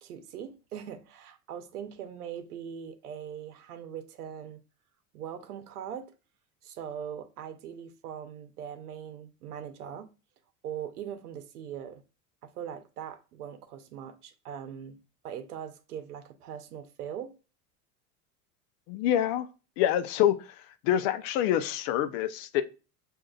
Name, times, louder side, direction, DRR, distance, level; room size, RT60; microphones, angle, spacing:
voice 1, 0.0-4.6 5.1-6.1 6.6-10.1 10.6-12.0 12.4-17.3, right 8 dB, 80° right, 0.8 m, -41 dB
voice 2, 18.9-19.5 19.8-20.4 20.8-22.6, left 11 dB, 60° left, 0.7 m, -26 dB
6.2 x 2.7 x 2.3 m
hypercardioid pair, 75°, 45 cm